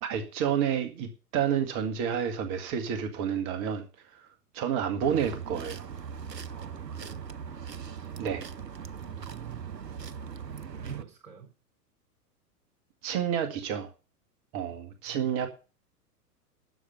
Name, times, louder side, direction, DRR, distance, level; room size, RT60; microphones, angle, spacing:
voice 1, 0.0-3.8 4.5-5.9 8.2-8.4 13.0-13.9 14.5-15.5, right 8 dB, 35° right, 2.0 m, -29 dB
sound 1, 5.0-11.0, right 7 dB, 90° right, 0.7 m, -40 dB
voice 2, 6.5-7.2 9.0-9.6 10.8-11.5 15.1-15.3, right 7 dB, 60° right, 4.4 m, -45 dB
12.0 x 7.2 x 6.9 m
figure-of-eight pair, 100°, 48 cm